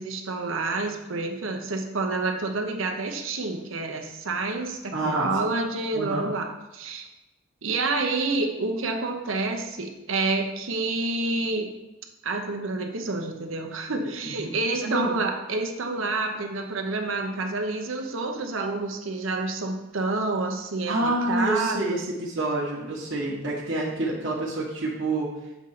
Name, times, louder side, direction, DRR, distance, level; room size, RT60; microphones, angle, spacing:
voice 1, 0.0-7.1 7.6-11.7 12.2-22.0, right 3 dB, 80° right, 4 dB, 0.8 m, -28 dB
voice 2, 4.9-5.5 5.9-6.3 14.2-14.5 14.8-15.2 20.9-25.3, right 1 dB, 60° right, -4 dB, 1.2 m, -28 dB
7.1 x 3.8 x 5.7 m, 0.99 s
head